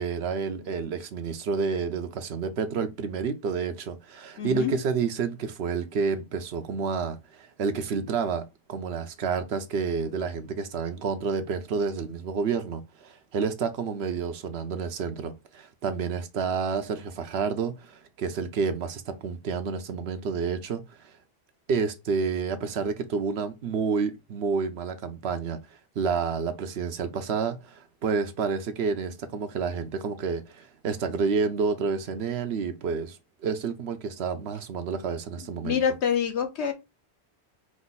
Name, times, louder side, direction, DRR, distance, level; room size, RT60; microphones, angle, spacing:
voice 1, 0.0-21.1 21.7-25.6 26.0-33.2 33.4-35.8, right 5 dB, 70° right, 0.9 m, -29 dB
voice 2, 4.4-4.7 35.4-36.7, left 7 dB, 85° left, 1.2 m, -27 dB
4.8 x 2.3 x 4.0 m
omnidirectional pair, 1.1 m